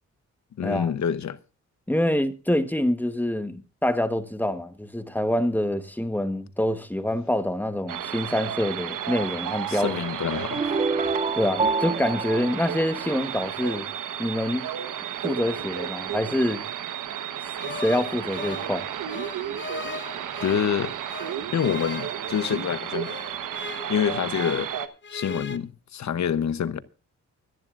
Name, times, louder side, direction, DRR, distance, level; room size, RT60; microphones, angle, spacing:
voice 1, 0.6-1.4 9.7-10.8 20.4-20.9 21.5-23.1 23.9-24.7 25.1-26.8, left 8 dB, 65° left, 0.9 m, -26 dB
voice 2, 1.9-9.9 11.4-13.9 14.2-14.7 15.2-16.6 17.8-18.9, left 1 dB, 5° left, 1.3 m, -26 dB
sound 1, 7.9-24.9, right 9 dB, 85° right, 1.2 m, -33 dB
sound 2, 10.5-13.6, right 4 dB, 20° right, 0.6 m, -27 dB
sound 3, 17.6-20.7 21.1-24.8 25.0-25.6, left 4 dB, 40° left, 1.0 m, -39 dB
24.5 x 11.0 x 2.5 m
wide cardioid pair, 115°, 31 cm